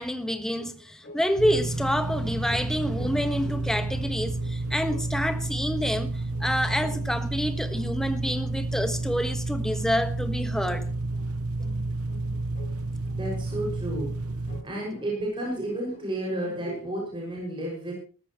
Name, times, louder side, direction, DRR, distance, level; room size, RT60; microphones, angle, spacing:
voice 1, 0.0-6.1 6.4-10.9 14.5-14.6, equal, ahead, 1.4 m, -28 dB
sound 1, 0.6-16.6, left 1 dB, 35° left, 4.6 m, -50 dB
sound 2, 1.4-14.6, right 2 dB, 75° right, 0.8 m, -30 dB
voice 2, 13.1-14.2 14.6-17.9, right 1 dB, 20° right, 6.0 m, -31 dB
20.5 x 14.0 x 3.1 m
head